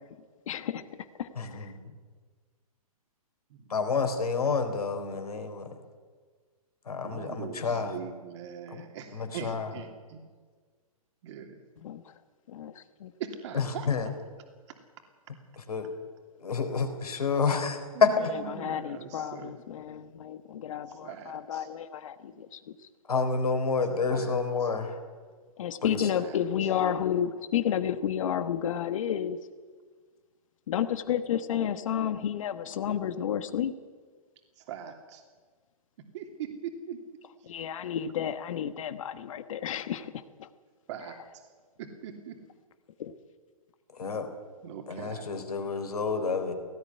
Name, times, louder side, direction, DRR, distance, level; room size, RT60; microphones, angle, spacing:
voice 1, 0.5-1.7 11.8-12.1 12.5-13.1 18.3-22.6 25.6-29.4 30.7-33.7 37.5-40.5 43.0-43.1, left 9 dB, 60° left, 12 dB, 1.3 m, -31 dB
voice 2, 1.4-1.8 3.7-5.7 6.9-8.0 8.7-8.8 9.1-9.7 13.5-14.1 15.7-15.9 16.4-18.1 23.1-25.0 25.8-26.0 44.0-44.3 44.9-46.5, left 5 dB, 85° left, 6 dB, 4.0 m, -29 dB
voice 3, 3.5-3.9 7.0-10.2 11.2-11.6 13.2-13.9 17.9-19.5 21.0-21.7 24.1-24.7 26.2-26.4 34.6-35.2 36.1-37.0 40.9-41.2 41.8-42.4 44.6-45.2, right 8 dB, 50° right, 4 dB, 3.0 m, -41 dB
18.0 x 16.0 x 9.7 m, 1.5 s
hypercardioid pair, 130°, 19 cm